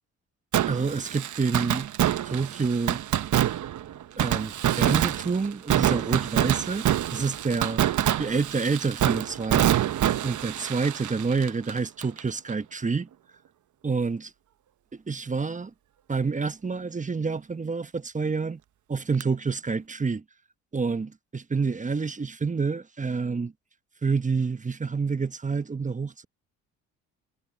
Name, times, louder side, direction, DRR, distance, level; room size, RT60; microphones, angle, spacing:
Fireworks, 0.5-12.2 12.5-12.6 19.2-19.3, right 11 dB, 55° right, 1.2 m, -26 dB
voice 1, 0.7-1.9 2.2-3.0 4.2-6.9 7.1-7.9 8.2-9.7 10.2-13.1 13.8-14.3 14.9-15.7 16.1-18.6 18.9-20.2 20.7-23.5 24.0-26.2, right 4 dB, 20° right, 1.2 m, -28 dB
supercardioid pair, 65°, 36 cm